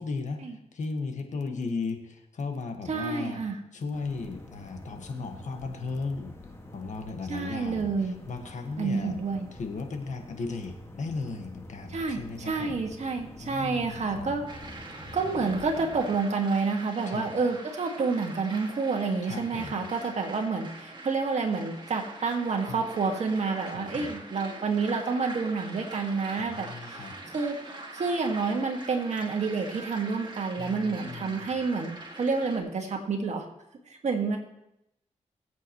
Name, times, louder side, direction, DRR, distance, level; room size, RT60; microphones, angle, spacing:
voice 1, 0.0-3.4 3.7-6.3 6.7-9.1 9.5-12.8 13.4-14.3 17.0-17.3 19.2-19.8 22.7-22.8 23.7-24.1 26.3-27.2 30.6-31.5, left 4 dB, 70° left, 5 dB, 1.7 m, -36 dB
voice 2, 2.9-3.6 7.3-8.2 8.8-9.5 11.9-14.5 15.1-27.6 27.9-33.5 34.0-34.4, right 4 dB, 65° right, 2 dB, 1.9 m, -29 dB
sound 1, 3.9-16.2, left 1 dB, 20° left, 1.9 m, -47 dB
sound 2, 14.5-32.6, right 2 dB, 35° right, 2.1 m, -44 dB
22.0 x 8.2 x 3.1 m, 0.83 s
cardioid pair, 90°, 13 cm